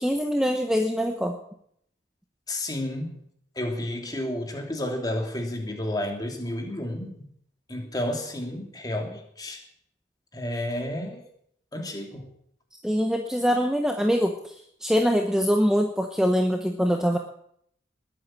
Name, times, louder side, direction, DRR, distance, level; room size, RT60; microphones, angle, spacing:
voice 1, 0.0-1.4 12.8-14.5 14.8-17.2, equal, 5° right, 3 dB, 1.0 m, -23 dB
voice 2, 2.5-3.2 3.6-7.3 7.7-9.6 10.3-11.2 11.7-12.3, left 1 dB, 20° left, 3 dB, 2.9 m, -31 dB
20.5 x 8.9 x 7.5 m, 0.69 s
head